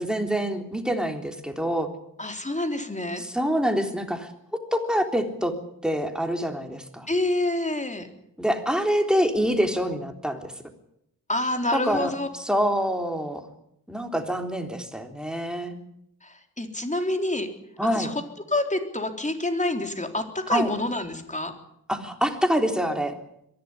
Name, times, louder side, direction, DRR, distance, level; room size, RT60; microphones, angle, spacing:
voice 1, 0.0-1.9 3.2-4.3 4.7-5.5 5.8-7.1 8.4-10.5 11.7-13.4 13.9-15.8 17.8-18.1 20.5-20.7 21.9-23.1, equal, ahead, 5 dB, 3.6 m, -26 dB
voice 2, 2.2-3.2 7.1-8.1 11.3-12.3 16.2-17.5 18.0-18.2 18.5-21.5, left 1 dB, 20° left, 6 dB, 3.6 m, -27 dB
22.5 x 16.0 x 9.9 m, 0.78 s
wide cardioid pair, 80°, 37 cm